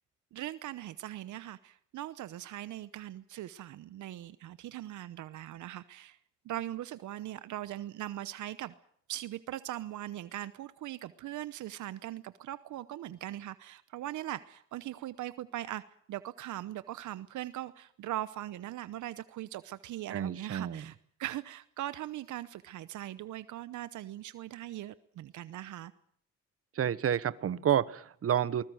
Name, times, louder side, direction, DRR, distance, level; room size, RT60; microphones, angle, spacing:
voice 1, 0.3-6.2 6.4-8.7 9.1-15.8 16.1-25.9, right 13 dB, 75° right, 15 dB, 0.9 m, -40 dB
voice 2, 20.1-20.9 26.7-28.6, right 9 dB, 50° right, 16 dB, 1.1 m, -29 dB
21.5 x 20.0 x 7.8 m, 0.63 s
cardioid pair, 90°, 30 cm